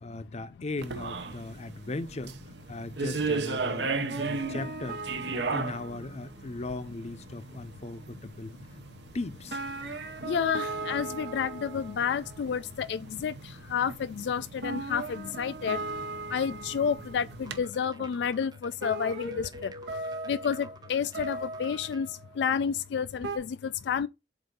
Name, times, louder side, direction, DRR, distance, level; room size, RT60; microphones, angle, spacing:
voice 1, 0.0-2.4 2.7-5.0 5.3-8.5 9.1-9.6, left 2 dB, 40° left, 0.6 m, -38 dB
sound 1, 0.8-17.6, right 4 dB, 75° right, 0.9 m, -38 dB
sound 2, 4.1-6.3 9.1-9.2 9.5-12.5 13.9-14.0 14.6-17.4 17.9-18.0 18.8-22.4 23.2-23.4, right 3 dB, 90° right, 1.3 m, -38 dB
voice 2, 10.3-15.8 16.3-19.7 20.3-24.1, left 7 dB, 70° left, 0.3 m, -30 dB
sound 3, 17.4-22.1, right 3 dB, 25° right, 0.7 m, -52 dB
7.7 x 2.6 x 5.3 m
head